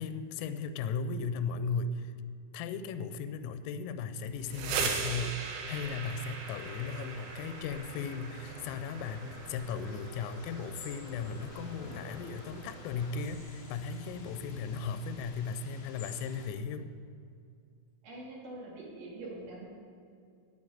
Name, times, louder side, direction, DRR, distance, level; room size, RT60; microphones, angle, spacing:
voice 1, 0.0-2.1 2.5-16.9, left 5 dB, 85° left, 10 dB, 3.3 m, -36 dB
sound 1, 4.3-14.0, right 5 dB, 75° right, 3.6 m, -40 dB
sound 2, 5.5-16.5, left 4 dB, 65° left, 2.5 m, -53 dB
sound 3, 5.8-15.0, equal, 45° left, 1.1 m, -52 dB
voice 2, 18.0-19.7, right 2 dB, 60° right, -5 dB, 4.9 m, -44 dB
9.1 x 8.7 x 9.1 m, 2.4 s
omnidirectional pair, 5.8 m